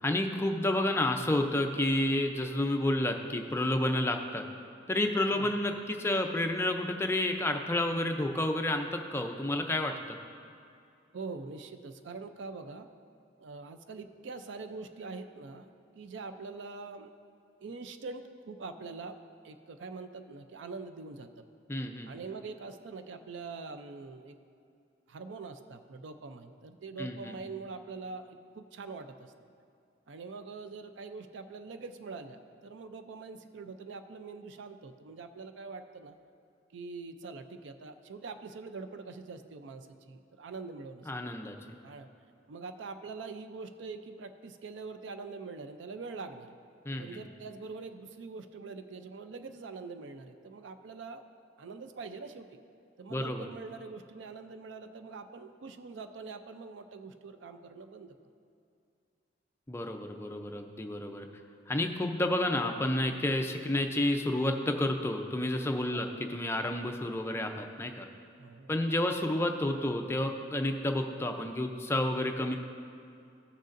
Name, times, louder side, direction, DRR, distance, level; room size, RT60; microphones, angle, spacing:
voice 1, 0.0-4.4 4.9-10.2 21.7-22.1 27.0-27.3 41.1-41.6 46.9-47.2 53.1-53.5 59.7-61.3 61.7-68.1 68.7-72.6, left 1 dB, 15° left, 4 dB, 0.4 m, -30 dB
voice 2, 11.1-12.9 13.4-17.1 17.6-19.2 19.4-21.4 22.1-24.4 25.1-29.3 30.1-36.2 36.7-41.1 41.8-42.1 42.5-46.6 47.0-51.2 51.6-52.6 53.0-58.1 65.9-66.3 68.4-68.7, right 4 dB, 70° right, 8 dB, 0.4 m, -44 dB
15.5 x 6.5 x 2.5 m, 2.4 s
head